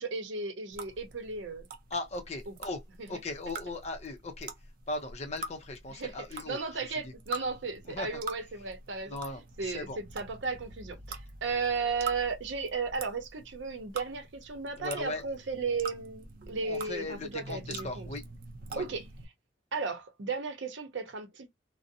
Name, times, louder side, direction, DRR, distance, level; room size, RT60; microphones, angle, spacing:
voice 1, 0.0-1.7 3.0-3.1 5.9-9.2 9.6-18.1 18.8-19.0 19.7-21.5, right 4 dB, 90° right, 0.7 m, -35 dB
sound 1, 0.7-19.3, right 3 dB, 50° right, 0.4 m, -45 dB
voice 2, 1.9-2.8 3.1-4.5 4.9-6.6 7.0-7.1 7.8-8.2 9.1-10.0 14.8-15.3 16.6-18.2 18.7-18.8, left 2 dB, 35° left, 0.6 m, -38 dB
2.5 x 2.0 x 2.6 m
head